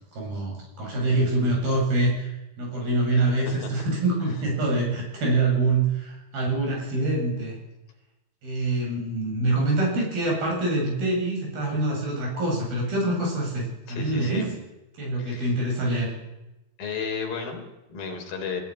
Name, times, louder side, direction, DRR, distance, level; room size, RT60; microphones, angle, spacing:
voice 1, 0.1-7.6 8.4-14.5 15.0-16.1, right 2 dB, 70° right, 1 dB, 9.7 m, -25 dB
voice 2, 3.1-3.8 13.9-14.5 15.2-15.5 16.8-18.6, left 5 dB, 65° left, 3 dB, 5.6 m, -34 dB
23.5 x 20.5 x 9.9 m, 1.0 s
omnidirectional pair, 4.4 m